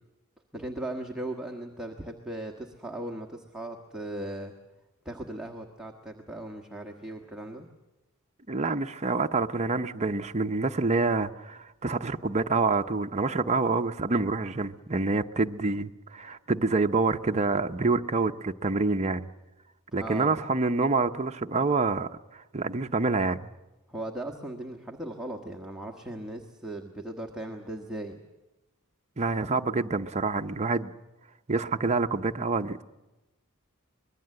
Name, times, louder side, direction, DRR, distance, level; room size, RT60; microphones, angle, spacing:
voice 1, 0.5-4.5 5.0-7.7 20.0-20.3 23.9-28.2 29.4-29.6, right 1 dB, 5° right, 1.4 m, -38 dB
voice 2, 8.5-19.3 19.9-23.5 29.2-30.9 31.5-32.8, right 3 dB, 30° right, 0.7 m, -27 dB
25.0 x 21.0 x 7.7 m
head